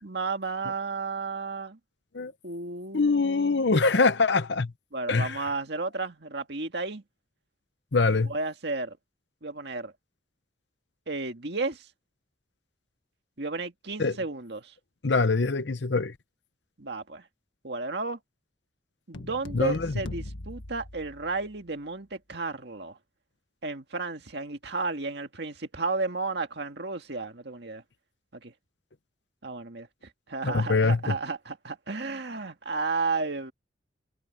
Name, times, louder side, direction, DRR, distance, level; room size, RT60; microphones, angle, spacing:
voice 1, 0.0-1.8 2.4-3.6 4.9-7.0 8.3-9.0 9.4-9.9 11.1-11.9 13.4-14.7 16.8-17.3 17.6-18.2 19.1-23.0 23.6-27.8 28.3-28.5 29.4-29.9 30.3-33.5, right 3 dB, 60° right, 2.0 m, -33 dB
voice 2, 2.9-4.7 5.1-5.5 7.9-8.3 14.0-14.2 15.0-16.1 19.5-19.9 30.4-31.2, left 3 dB, 65° left, 0.9 m, -24 dB
sound 1, 19.1-21.7, left 1 dB, 90° left, 1.6 m, -41 dB
head